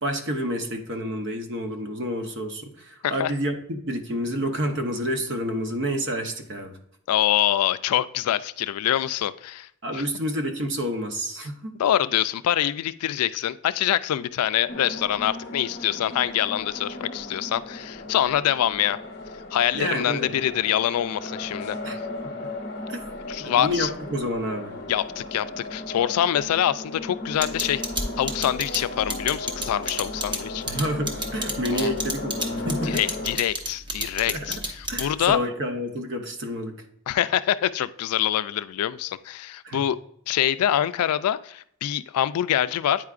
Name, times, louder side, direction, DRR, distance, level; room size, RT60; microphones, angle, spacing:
voice 1, 0.0-6.7 9.8-11.7 19.7-20.4 21.8-22.0 22.9-23.0 23.4-24.7 30.7-33.0 34.3-34.6 34.9-36.8 39.6-39.8, equal, 55° right, 5 dB, 0.8 m, -29 dB
voice 2, 7.1-9.7 9.9-10.0 11.8-19.0 19.5-21.8 23.3-23.9 24.9-27.8 28.2-30.6 31.7-31.9 32.8-35.4 37.1-40.0 40.3-43.1, left 11 dB, 85° left, 14 dB, 0.3 m, -25 dB
sound 1, 14.7-33.4, left 2 dB, 45° left, 0.8 m, -36 dB
sound 2, 27.4-35.3, right 1 dB, 20° right, 0.7 m, -29 dB
8.9 x 4.7 x 2.4 m, 0.70 s
head